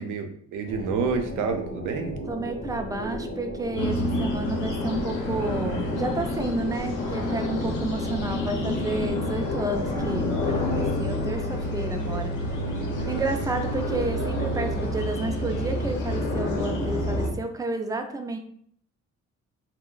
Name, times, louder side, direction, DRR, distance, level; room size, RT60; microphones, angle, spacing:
voice 1, 0.0-2.1, right 5 dB, 85° right, 5 dB, 0.6 m, -28 dB
sound 1, 0.7-17.4, equal, 40° left, 0.8 m, -36 dB
voice 2, 2.3-12.6 13.1-18.4, right 2 dB, 10° right, 5 dB, 0.4 m, -31 dB
sound 2, 3.7-17.3, left 1 dB, 80° left, 0.7 m, -29 dB
2.3 x 2.1 x 3.7 m, 0.63 s
cardioid pair, 90°, 30 cm